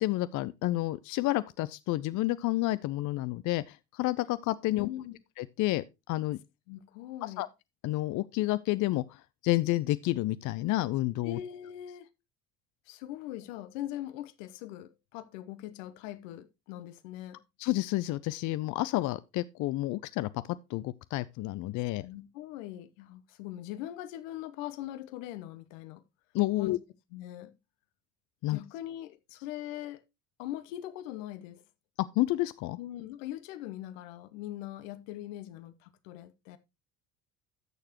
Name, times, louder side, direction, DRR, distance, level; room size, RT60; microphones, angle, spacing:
voice 1, 0.0-4.9 5.4-6.4 7.2-7.5 7.8-11.4 17.6-20.3 20.7-22.1 26.3-26.8 28.4-28.6 32.2-32.8, left 17 dB, 45° left, 0.5 m, -30 dB
voice 2, 4.7-5.2 6.7-7.4 11.2-12.1 12.9-17.4 22.0-26.0 26.6-26.8 27.1-27.5 28.5-30.0 30.4-31.6 32.8-36.6, left 13 dB, 70° left, 1.0 m, -41 dB
13.0 x 6.6 x 2.9 m
hypercardioid pair, 60°, 41 cm